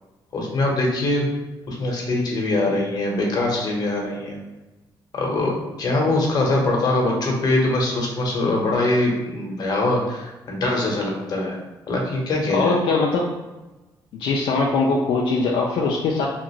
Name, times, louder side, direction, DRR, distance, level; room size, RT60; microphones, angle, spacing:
voice 1, 0.3-1.3 1.7-4.4 5.1-11.6 11.9-12.8, left 2 dB, 50° left, -1 dB, 0.9 m, -22 dB
voice 2, 12.5-13.3 14.1-16.3, left 3 dB, 75° left, -2 dB, 0.4 m, -21 dB
2.9 x 2.4 x 2.9 m, 1.1 s
cardioid pair, 115°, 9 cm